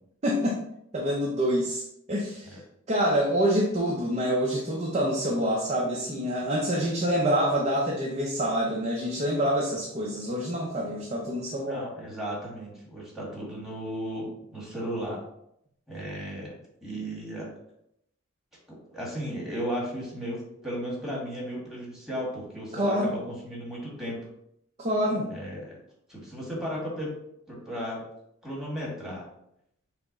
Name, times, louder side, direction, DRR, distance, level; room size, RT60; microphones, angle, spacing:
voice 1, 0.2-0.6 0.9-2.6 2.9-11.8 22.7-23.1 24.8-25.3, equal, 35° right, -2 dB, 0.6 m, -26 dB
voice 2, 11.6-15.2 15.9-17.5 18.9-24.2 25.3-25.7 26.1-27.1 27.5-28.0 28.4-29.3, equal, ahead, -5 dB, 1.4 m, -35 dB
5.6 x 2.0 x 3.8 m, 0.76 s
head